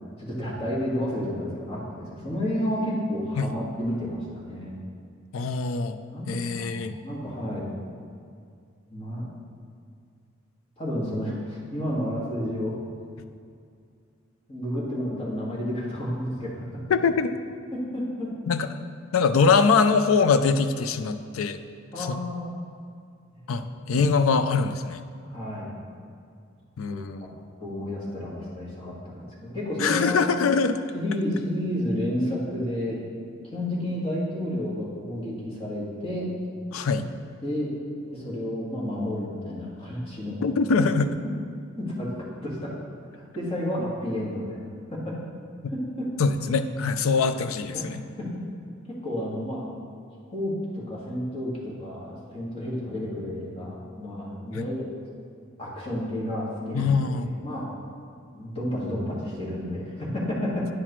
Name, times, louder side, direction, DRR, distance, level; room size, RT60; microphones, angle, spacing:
voice 1, 0.2-4.8 6.1-7.7 8.9-9.3 10.8-12.8 14.5-16.8 17.7-18.3 21.9-22.5 23.3-23.6 25.2-25.8 26.8-27.3 27.6-30.2 30.9-33.0 33.4-36.3 37.4-37.7 38.0-40.4 41.8-42.1 42.4-42.7 43.3-44.7 44.9-45.1 45.7-46.1 47.7-48.3 49.0-49.7 50.3-54.9 55.6-57.7 58.3-60.7, left 1 dB, 30° left, -6 dB, 1.8 m, -31 dB
voice 2, 5.3-6.0 6.3-7.0 16.9-17.4 18.5-18.7 19.1-21.6 22.0-22.2 23.5-25.0 26.8-27.3 29.8-30.8 36.7-37.1 40.4-41.1 46.2-48.0 54.5-54.7 56.7-57.3, left 5 dB, 80° left, 9 dB, 0.4 m, -23 dB
9.8 x 5.8 x 3.1 m, 2.3 s
head